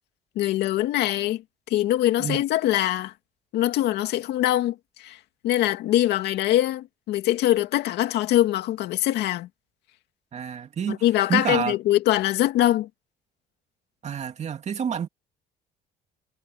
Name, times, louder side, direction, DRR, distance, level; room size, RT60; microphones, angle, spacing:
voice 1, 0.4-1.4 1.7-3.1 3.5-5.2 5.4-9.5 10.9-12.9, left 14 dB, 80° left, 2.4 m, -23 dB
voice 2, 10.3-11.0 11.3-11.8 14.0-15.1, right 7 dB, 40° right, 2.5 m, -28 dB
cardioid pair, 110°, 17 cm